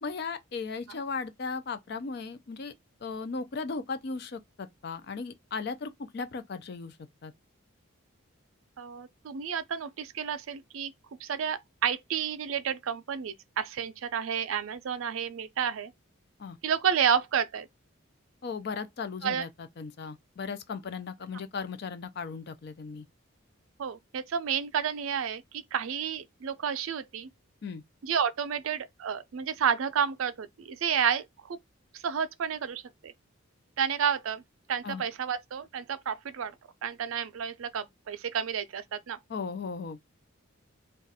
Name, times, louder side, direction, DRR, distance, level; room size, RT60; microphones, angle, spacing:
voice 1, 0.0-2.7 3.0-7.0 7.2-7.3 16.4-16.6 18.4-23.1 27.6-27.8 34.8-35.0 39.3-40.0, left 4 dB, 50° left, 0.4 m, -36 dB
voice 2, 8.8-10.9 11.2-15.9 16.6-17.7 19.2-19.4 23.8-27.3 28.0-31.6 31.9-33.1 33.8-34.4 34.7-36.5 36.8-39.2, right 7 dB, 80° right, 0.4 m, -31 dB
2.4 x 2.2 x 3.9 m
head